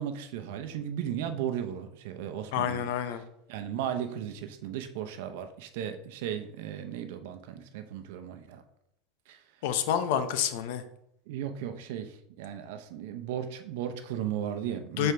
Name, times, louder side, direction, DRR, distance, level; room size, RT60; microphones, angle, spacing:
voice 1, 0.0-2.9 3.5-8.6 9.3-9.4 11.3-15.1, right 9 dB, 75° right, 8 dB, 0.7 m, -36 dB
voice 2, 2.5-3.2 9.6-10.8 15.0-15.1, left 9 dB, 75° left, 10 dB, 0.6 m, -28 dB
6.6 x 4.4 x 3.4 m, 0.77 s
supercardioid pair, 140°, 0 cm